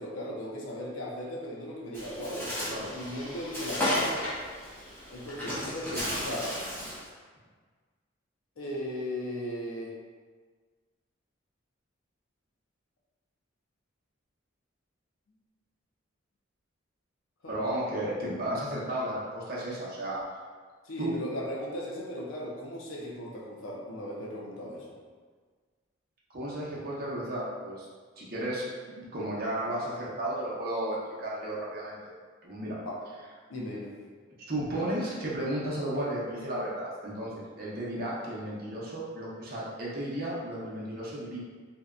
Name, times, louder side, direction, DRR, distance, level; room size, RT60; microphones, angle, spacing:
voice 1, 0.0-4.2 5.1-6.6 8.6-9.9 17.4-17.6 20.8-25.0 32.8-33.0 33.5-33.9, left 1 dB, 85° left, -2 dB, 0.5 m, -37 dB
Bird, 1.9-7.1, left 1 dB, 10° left, 0.6 m, -34 dB
voice 2, 17.4-20.2 21.0-21.1 26.3-27.9 28.2-32.1 32.4-32.8 34.5-41.4, right 1 dB, 45° right, -6 dB, 0.6 m, -34 dB
2.7 x 2.1 x 2.4 m, 1.5 s
head